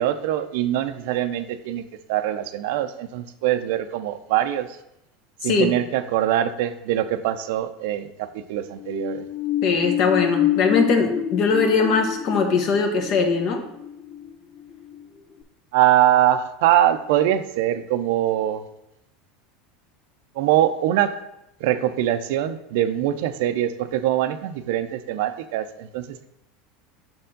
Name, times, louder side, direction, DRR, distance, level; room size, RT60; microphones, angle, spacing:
voice 1, 0.0-1.8 2.1-4.7 5.4-9.3 15.7-18.6 20.4-21.2 21.6-26.3, right 12 dB, 70° right, 11 dB, 0.4 m, -23 dB
voice 2, 5.4-5.7 9.6-13.6, left 4 dB, 55° left, 5 dB, 1.1 m, -21 dB
sound 1, 8.7-15.0 15.4-15.5, left 12 dB, 30° left, 0.5 m, -27 dB
6.1 x 4.3 x 3.8 m, 0.87 s
hypercardioid pair, 95°, 0 cm